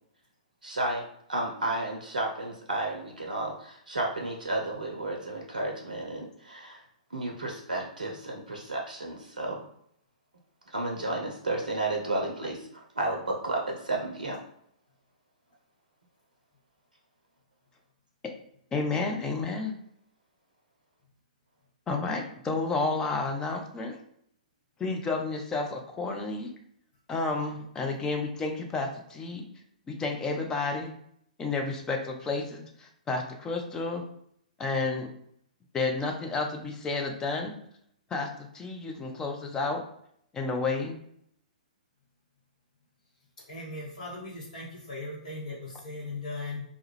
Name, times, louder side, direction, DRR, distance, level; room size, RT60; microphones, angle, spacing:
voice 1, 0.6-1.0 1.3-6.8 7.1-9.6 10.7-14.4, right 2 dB, 80° right, 0 dB, 0.5 m, -32 dB
voice 2, 18.7-19.7 21.9-24.0 24.8-26.5 27.1-29.4 29.9-30.9 31.4-34.0 34.6-35.1 35.7-37.5 38.1-39.8 40.3-41.0, left 3 dB, 15° left, 2 dB, 0.4 m, -31 dB
voice 3, 43.5-46.6, left 2 dB, 60° left, -5 dB, 0.8 m, -38 dB
2.2 x 2.0 x 3.0 m, 0.69 s
figure-of-eight pair, 115°, 4 cm